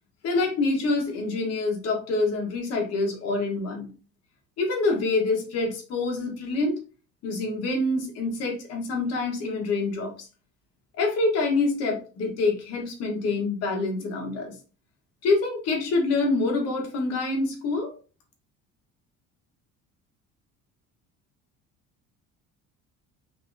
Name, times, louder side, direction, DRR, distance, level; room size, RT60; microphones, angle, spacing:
voice 1, 0.2-3.9 4.6-6.8 7.2-10.3 11.0-14.5 15.2-17.9, left 3 dB, 60° left, 1 dB, 1.2 m, -26 dB
3.6 x 2.8 x 2.5 m, 0.35 s
cardioid pair, 155°, 29 cm